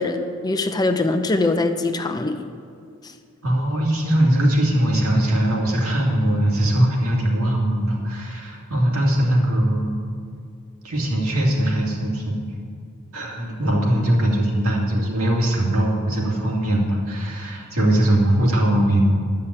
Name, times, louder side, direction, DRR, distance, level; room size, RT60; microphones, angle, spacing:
voice 1, 0.0-2.4, left 2 dB, 20° left, 7 dB, 0.5 m, -22 dB
voice 2, 3.4-9.9 10.8-12.4 13.1-19.0, right 1 dB, 90° right, -2 dB, 2.5 m, -20 dB
11.0 x 5.7 x 8.8 m, 2.3 s
head